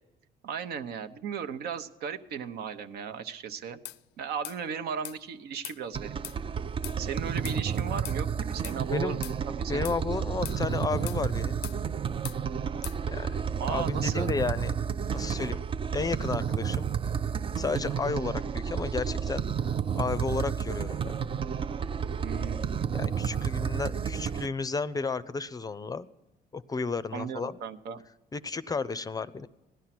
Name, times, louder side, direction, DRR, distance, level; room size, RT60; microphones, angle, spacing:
voice 1, 0.4-3.8 4.2-6.1 7.0-9.9 13.6-14.3 22.2-22.9 27.1-28.0, right 7 dB, 70° right, 9 dB, 1.0 m, -36 dB
sound 1, 3.8-4.0 4.4-4.6 5.0-5.2 5.6-5.8 6.2-6.4 6.8-7.0 7.4-7.6 8.0-8.2 8.6-8.8 9.2-9.4 9.8-10.0 10.4-10.6 11.1-11.2 11.6-11.8 12.2-12.4 12.8-13.0, left 14 dB, 80° left, 0.5 m, -40 dB
sound 2, 5.9-24.5, right 7 dB, 30° right, 0.4 m, -31 dB
voice 2, 9.7-11.6 13.1-14.7 15.1-15.6 15.9-16.9 17.6-19.5 20.0-21.3 22.9-26.1 26.5-27.6 28.3-29.5, left 4 dB, 20° left, 15 dB, 0.5 m, -32 dB
16.5 x 11.5 x 6.0 m, 1.0 s
cardioid pair, 110°, 17 cm